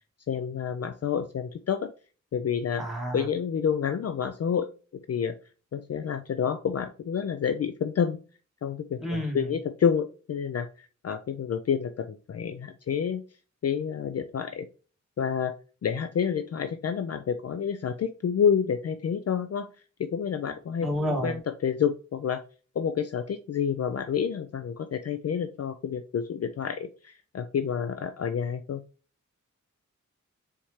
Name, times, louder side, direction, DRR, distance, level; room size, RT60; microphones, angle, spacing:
voice 1, 0.3-1.9 2.3-2.8 3.1-4.7 5.1-5.3 5.7-8.2 8.6-13.2 13.6-14.7 15.2-15.5 15.8-19.7 20.0-20.9 21.2-22.4 22.8-28.8, left 7 dB, 55° left, 10 dB, 0.4 m, -29 dB
voice 2, 2.8-3.3 9.0-9.5 20.8-21.4, equal, ahead, -1 dB, 1.8 m, -30 dB
4.1 x 3.6 x 3.0 m, 0.36 s
wide cardioid pair, 85°, 31 cm